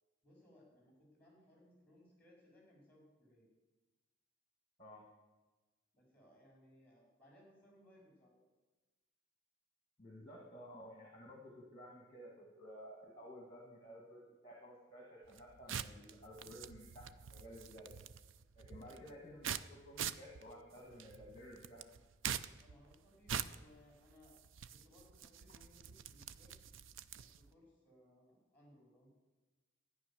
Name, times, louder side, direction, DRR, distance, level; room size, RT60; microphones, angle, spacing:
voice 1, 0.2-3.5 5.9-8.4 22.6-24.3 24.7-26.8 27.1-29.1, left 1 dB, 10° left, -2 dB, 5.0 m, -65 dB
voice 2, 10.0-17.9 18.6-21.9, equal, 25° left, 0 dB, 2.0 m, -54 dB
sound 1, 15.3-27.5, right 8 dB, 65° right, 0.5 m, -46 dB
12.5 x 9.9 x 7.0 m, 1.2 s
head